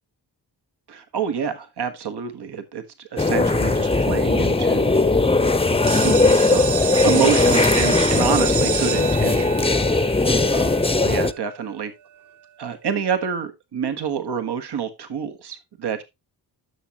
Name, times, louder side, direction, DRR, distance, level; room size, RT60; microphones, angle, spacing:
voice 1, 0.9-4.9 6.0-6.7 7.0-10.2 10.5-10.7 10.9-11.9 12.6-16.0, right 7 dB, 60° right, 1.4 m, -27 dB
sound 1, 3.2-11.3, left 3 dB, 15° left, 0.8 m, -19 dB
sound 2, 5.9-11.5, right 8 dB, 40° right, 0.7 m, -29 dB
12.5 x 6.3 x 3.0 m
cardioid pair, 55°, 44 cm